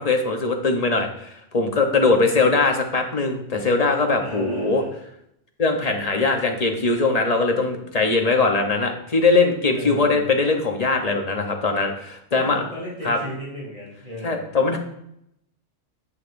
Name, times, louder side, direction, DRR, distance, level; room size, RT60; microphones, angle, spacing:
voice 1, 0.0-4.8 5.6-12.6 13.0-13.2 14.2-14.8, left 3 dB, 35° left, 3 dB, 0.9 m, -21 dB
voice 2, 2.2-2.6 4.2-4.9 9.7-10.3 12.3-14.5, equal, 35° right, -7 dB, 3.1 m, -35 dB
9.9 x 6.5 x 2.6 m, 0.77 s
omnidirectional pair, 1.2 m